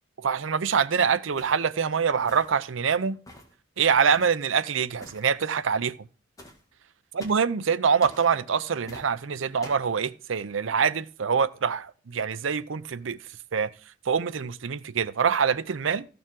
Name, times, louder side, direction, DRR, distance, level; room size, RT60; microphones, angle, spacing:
voice 1, 0.2-3.2 3.8-5.9 7.1-13.2 13.5-13.7 14.1-16.0, right 6 dB, 75° right, 0.6 m, -25 dB
sound 1, 1.4-1.7 2.3-2.7 3.3-3.6 4.1-4.4 5.0-5.3 6.4-6.6 7.2-7.5 8.0-8.3 8.9-9.1 9.6-9.9, left 1 dB, 20° left, 2.0 m, -46 dB
14.0 x 6.8 x 3.8 m
head